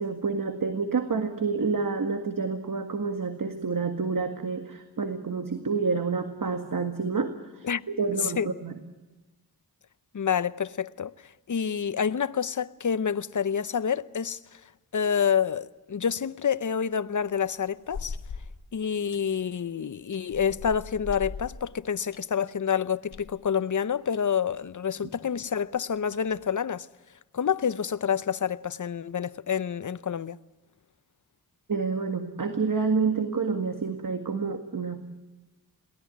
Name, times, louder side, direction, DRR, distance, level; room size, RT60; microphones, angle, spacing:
voice 1, 0.0-7.7 8.0-8.8 31.7-35.0, right 4 dB, 60° right, 1.9 m, -28 dB
voice 2, 10.1-11.1 11.5-14.4 14.9-18.1 18.7-26.9 27.3-30.4, left 7 dB, 50° left, 0.8 m, -28 dB
sound 1, 17.2-18.6 19.1-19.4 20.1-22.2 22.7-22.8 23.1-23.4 24.1-24.2 24.5-24.6 25.1-25.2 25.9-26.4, left 5 dB, 90° left, 1.2 m, -40 dB
22.0 x 18.0 x 9.3 m
cardioid pair, 50°, 38 cm